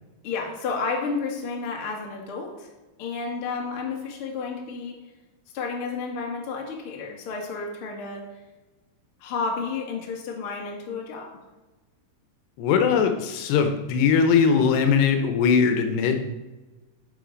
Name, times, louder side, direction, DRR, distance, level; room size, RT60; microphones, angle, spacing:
voice 1, 0.2-2.7 3.0-5.0 5.5-8.2 9.2-11.3, left 4 dB, 45° left, 0 dB, 1.9 m, -31 dB
voice 2, 12.6-16.2, left 6 dB, 80° left, 6 dB, 2.9 m, -20 dB
11.0 x 6.8 x 5.1 m, 1.2 s
omnidirectional pair, 4.9 m